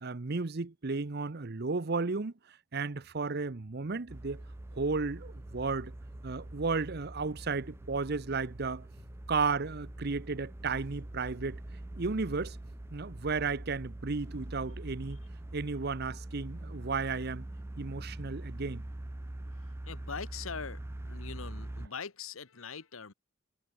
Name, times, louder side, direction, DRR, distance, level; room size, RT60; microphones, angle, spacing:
voice 1, 0.0-4.4 4.7-5.9 6.2-8.9 9.3-11.6 12.0-12.6 12.9-15.2 15.5-17.5 17.8-18.8, right 4 dB, 50° right, 0.8 m, -34 dB
sound 1, 2.9-19.9, right 1 dB, 80° right, 3.8 m, -56 dB
sound 2, 4.1-21.9, right 1 dB, 10° right, 0.4 m, -44 dB
voice 2, 19.9-23.1, left 5 dB, 80° left, 1.3 m, -42 dB
head